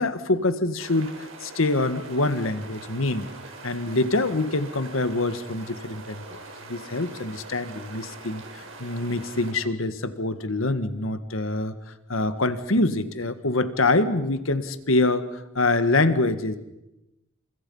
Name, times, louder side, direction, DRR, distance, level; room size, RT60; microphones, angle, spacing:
voice 1, 0.0-3.3 3.6-6.4 6.7-11.7 12.1-16.6, left 2 dB, 80° left, 11 dB, 1.7 m, -25 dB
sound 1, 0.8-9.5, right 3 dB, 80° right, 5.5 m, -43 dB
29.5 x 27.5 x 5.6 m, 0.93 s
head